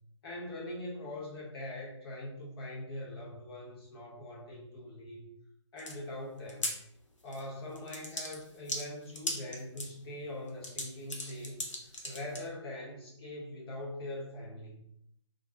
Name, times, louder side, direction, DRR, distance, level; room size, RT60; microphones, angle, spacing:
voice 1, 0.2-5.2 5.7-6.7 7.2-11.6 12.0-14.8, left 1 dB, 50° left, -4 dB, 1.0 m, -42 dB
sound 1, 5.8-5.9 6.4-6.7 7.3-7.5 7.8-9.9 10.5-12.4, left 1 dB, 80° left, 0.6 m, -38 dB
2.4 x 2.2 x 2.4 m, 0.75 s
figure-of-eight pair, 135°, 16 cm